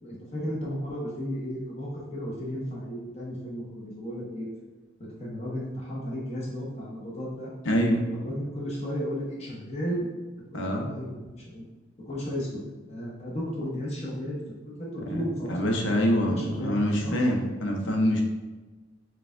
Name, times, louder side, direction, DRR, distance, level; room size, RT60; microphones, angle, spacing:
voice 1, 0.0-4.5 5.2-7.5 8.1-10.1 10.5-11.7 12.1-12.6 12.9-17.2, equal, 35° left, -5 dB, 0.8 m, -34 dB
voice 2, 7.6-8.1 10.5-10.9 15.1-15.2 15.5-18.2, equal, 85° left, 1 dB, 0.7 m, -25 dB
4.6 x 2.3 x 3.6 m, 1.3 s
head